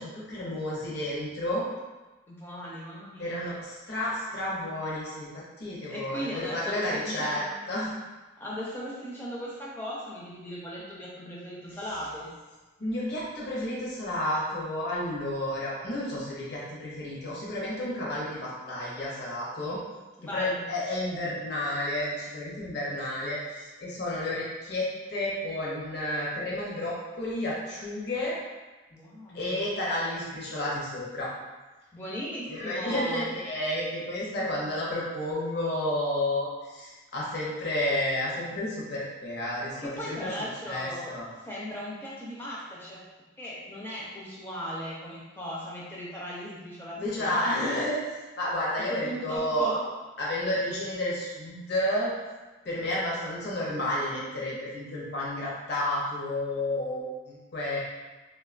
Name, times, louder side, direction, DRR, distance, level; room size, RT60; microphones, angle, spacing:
voice 1, 0.0-1.7 3.2-5.3 5.6-7.4 7.7-7.9 12.8-19.8 20.3-28.3 29.3-31.3 32.5-40.3 40.7-41.3 47.0-48.0 48.4-49.8 50.2-52.1 52.6-57.8, left 1 dB, 55° left, -5 dB, 0.6 m, -31 dB
voice 2, 2.3-3.5 5.9-7.5 8.4-12.3 19.6-19.7 20.2-20.6 28.9-29.6 31.9-33.3 39.8-43.0 43.4-47.6 48.9-49.8, equal, 10° left, -6 dB, 0.5 m, -37 dB
3.3 x 2.2 x 2.4 m, 1.2 s
head